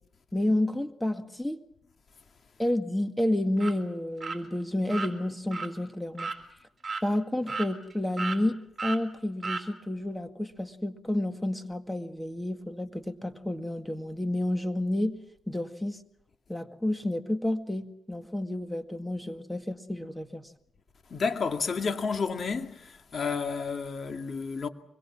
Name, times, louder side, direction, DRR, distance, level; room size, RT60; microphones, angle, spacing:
voice 1, 0.3-1.6 2.6-6.3 7.0-15.2 15.5-16.0 16.5-20.5, left 1 dB, 5° left, 1.9 m, -30 dB
sound 1, 3.6-3.7 4.2-4.4 4.9-5.1 5.5-5.7 6.2-6.4 6.8-7.0 7.5-8.4 8.8-9.0 9.4-9.6, right 4 dB, 40° right, 4.2 m, -33 dB
voice 2, 21.1-24.7, left 5 dB, 50° left, 2.3 m, -31 dB
25.0 x 22.0 x 7.4 m
cardioid pair, 75°, 0 cm